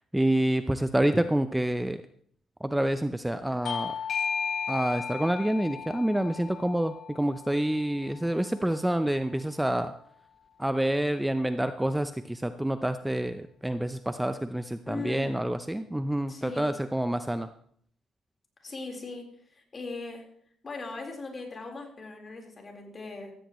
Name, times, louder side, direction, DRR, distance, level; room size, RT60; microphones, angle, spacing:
voice 1, 0.1-2.0 2.6-4.0 4.7-9.9 10.6-17.5, right 1 dB, 5° right, 10 dB, 0.6 m, -28 dB
Bell / Doorbell, 3.6-8.8, left 7 dB, 55° left, 1.0 m, -35 dB
voice 2, 14.9-15.4 16.3-16.7 18.6-20.2 20.6-23.3, left 3 dB, 35° left, 1 dB, 4.1 m, -39 dB
15.5 x 15.0 x 3.1 m, 0.63 s
cardioid pair, 90°, 0 cm